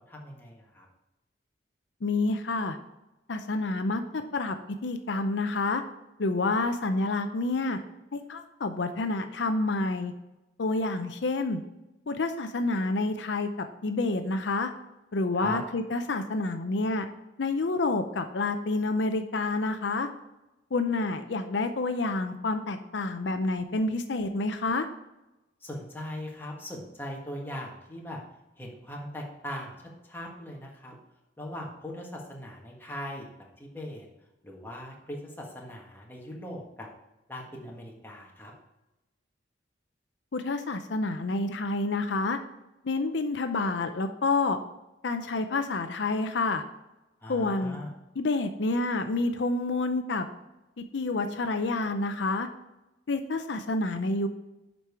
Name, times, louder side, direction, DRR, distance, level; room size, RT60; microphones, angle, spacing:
voice 1, 0.1-0.9 15.3-15.6 25.6-28.2 28.6-30.9 31.4-33.3 33.6-34.1 34.4-36.9 37.3-38.5 47.2-47.9, left 1 dB, 10° left, -2 dB, 1.5 m, -40 dB
voice 2, 2.0-2.8 3.3-4.6 4.8-5.8 6.2-7.8 8.1-10.1 10.6-11.6 12.1-14.7 15.1-17.1 17.4-20.1 20.7-24.9 40.3-42.4 42.8-44.6 45.0-46.6 47.3-47.8 48.2-50.2 50.8-52.5 53.1-54.3, left 3 dB, 70° left, 7 dB, 0.6 m, -28 dB
7.4 x 5.3 x 4.7 m, 0.98 s
head